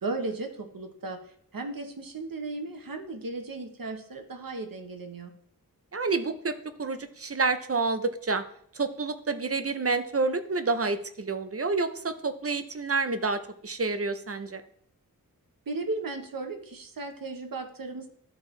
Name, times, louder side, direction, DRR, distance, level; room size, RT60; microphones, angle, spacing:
voice 1, 0.0-5.3 15.7-18.1, right 3 dB, 65° right, 4 dB, 1.1 m, -35 dB
voice 2, 5.9-6.5 6.8-8.4 8.7-14.6, right 3 dB, 40° right, 9 dB, 0.7 m, -28 dB
12.5 x 4.6 x 3.2 m, 0.64 s
wide cardioid pair, 80°, 36 cm